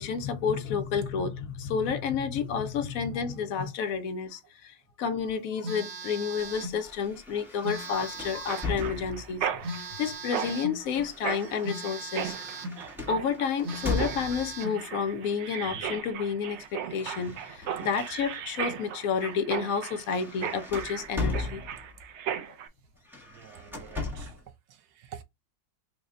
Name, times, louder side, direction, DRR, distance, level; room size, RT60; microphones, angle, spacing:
voice 1, 0.0-12.3 13.1-21.6, left 6 dB, 70° left, 1.0 m, -30 dB
Telephone, 5.6-6.8 7.6-8.8 9.6-10.8 11.6-12.8 13.3-13.4 13.6-14.8, right 2 dB, 50° right, 1.0 m, -38 dB
sound 1, 6.4-9.5 10.4-14.6 15.6-16.0 16.3-18.6 19.1-19.3 19.7-22.1 23.0-24.5, left 3 dB, ahead, 0.7 m, -38 dB
Mechanisms, 8.5-22.7, right 8 dB, 70° right, 0.6 m, -36 dB
voice 2, 23.2-24.4 24.7-25.2, right 9 dB, 85° right, 1.2 m, -47 dB
4.0 x 2.1 x 3.6 m
omnidirectional pair, 1.7 m